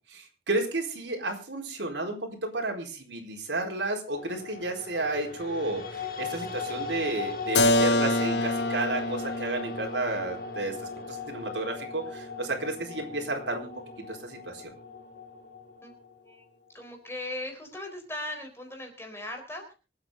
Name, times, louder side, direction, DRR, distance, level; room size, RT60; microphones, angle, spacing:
voice 1, 0.1-10.8 11.1-13.7 14.1-14.7, right 2 dB, 90° right, 2 dB, 4.5 m, -32 dB
sound 1, 4.2-16.4, left 4 dB, 55° left, 2.4 m, -39 dB
Keyboard (musical), 7.5-13.1, left 2 dB, 75° left, 1.2 m, -28 dB
voice 2, 16.7-19.7, left 1 dB, 15° left, 4 dB, 4.1 m, -38 dB
25.5 x 8.9 x 3.8 m, 0.33 s
head